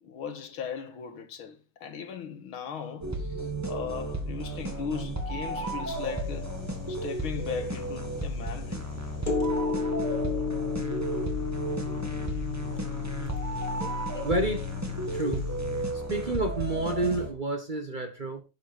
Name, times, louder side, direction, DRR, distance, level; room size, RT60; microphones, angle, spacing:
voice 1, 0.0-6.6 6.9-8.9, left 7 dB, 80° left, 2.3 m, -38 dB
sound 1, 3.0-17.3, right 2 dB, 10° right, 1.7 m, -34 dB
sound 2, 5.9-15.9, left 5 dB, 25° left, 2.2 m, -34 dB
voice 2, 13.8-14.7 15.1-15.4 16.1-18.4, right 2 dB, 25° right, 1.4 m, -29 dB
11.0 x 7.8 x 4.4 m
omnidirectional pair, 2.3 m